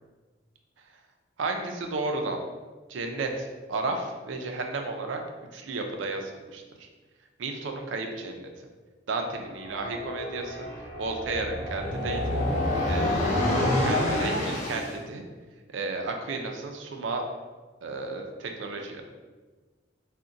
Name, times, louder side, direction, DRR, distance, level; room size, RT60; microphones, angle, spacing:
voice 1, 1.4-2.4 2.9-5.2 5.5-6.9 7.4-8.4 9.1-10.7 11.0-12.4 12.9-13.1 13.8-15.2 15.7-17.2 17.8-19.0, right 3 dB, 70° right, 4 dB, 0.4 m, -33 dB
sound 1, 9.5-14.9, left 1 dB, 40° left, 0.6 m, -28 dB
2.5 x 2.1 x 3.8 m, 1.3 s
head